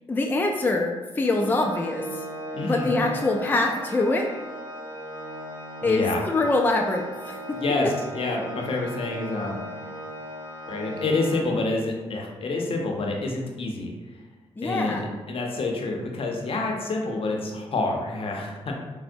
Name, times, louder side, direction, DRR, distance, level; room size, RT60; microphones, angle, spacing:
voice 1, 0.1-2.2 2.6-4.3 5.8-7.6 14.6-15.1, left 2 dB, 20° left, 1 dB, 0.3 m, -24 dB
Organ, 1.2-12.0, right 1 dB, 50° right, 1.3 m, -37 dB
voice 2, 2.5-2.9 5.8-6.2 7.5-9.6 10.7-13.9 14.6-18.7, left 2 dB, 60° left, 0 dB, 0.6 m, -28 dB
4.3 x 2.0 x 2.6 m, 1.2 s
cardioid pair, 60°, 11 cm